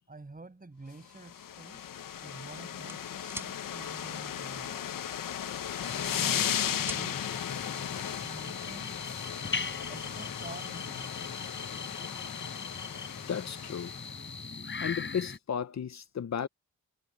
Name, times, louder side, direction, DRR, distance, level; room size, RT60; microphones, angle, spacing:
voice 1, 0.1-1.9 2.2-5.0 6.1-7.3 8.2-9.0 9.9-11.3, right 3 dB, 25° right, 6.5 m, -48 dB
sound 1, 1.1-14.3, left 9 dB, 90° left, 1.0 m, -36 dB
sound 2, 2.9-3.5 5.2-5.4 5.8-7.0, right 1 dB, 5° right, 6.7 m, -42 dB
sound 3, 5.8-15.4, left 4 dB, 35° left, 4.4 m, -40 dB
voice 2, 13.3-13.9 14.8-16.5, left 8 dB, 55° left, 0.8 m, -34 dB
cardioid pair, 90°, 32 cm